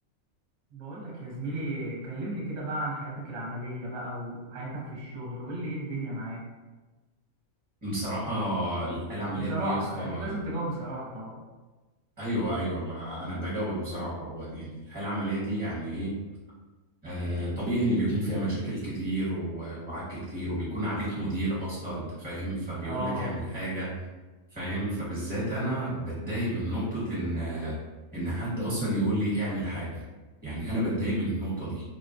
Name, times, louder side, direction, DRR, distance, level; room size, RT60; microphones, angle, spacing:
voice 1, 0.7-6.4 9.3-11.4 22.8-23.4, right 1 dB, 60° right, -3 dB, 1.0 m, -34 dB
voice 2, 7.8-10.4 12.2-16.1 17.0-23.9 24.5-27.8 28.1-30.0 30.4-31.8, right 1 dB, 20° right, -10 dB, 1.0 m, -31 dB
3.5 x 2.2 x 2.6 m, 1.2 s
omnidirectional pair, 1.6 m